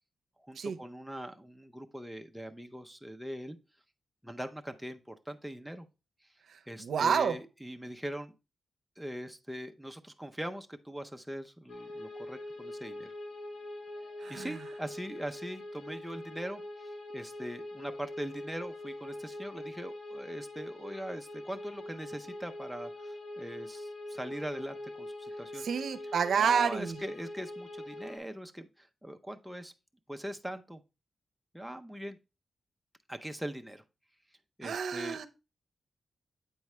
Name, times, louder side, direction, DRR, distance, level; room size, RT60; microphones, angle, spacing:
voice 1, 0.4-3.6 4.2-5.9 6.7-8.3 9.0-13.1 14.3-25.7 26.4-29.7 30.1-30.8 31.5-32.2 33.1-33.8 34.6-35.2, equal, ahead, 0.5 m, -41 dB
voice 2, 6.5-7.4 14.2-14.5 25.6-27.0 34.6-35.3, right 7 dB, 75° right, 0.6 m, -29 dB
sound 1, 11.7-28.2, left 1 dB, 60° left, 1.6 m, -43 dB
8.0 x 4.7 x 3.1 m
wide cardioid pair, 140°, 0 cm